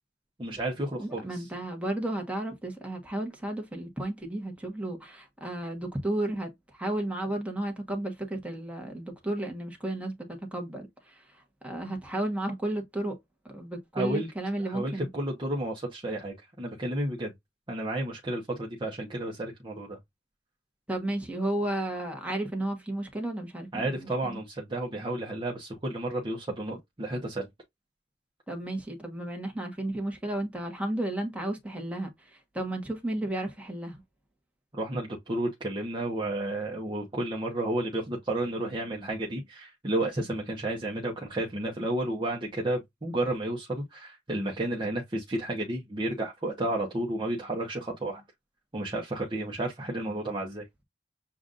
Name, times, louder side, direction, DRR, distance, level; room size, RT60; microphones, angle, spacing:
voice 1, 0.4-1.5 13.9-14.3 14.6-17.3 17.7-20.0 23.7-27.5 34.7-48.2 48.7-50.7, right 1 dB, 25° right, 1.0 m, -32 dB
voice 2, 1.0-11.2 11.6-13.2 13.5-15.1 20.9-24.1 28.5-34.0, right 1 dB, 10° right, 1.2 m, -33 dB
7.0 x 2.5 x 2.5 m
head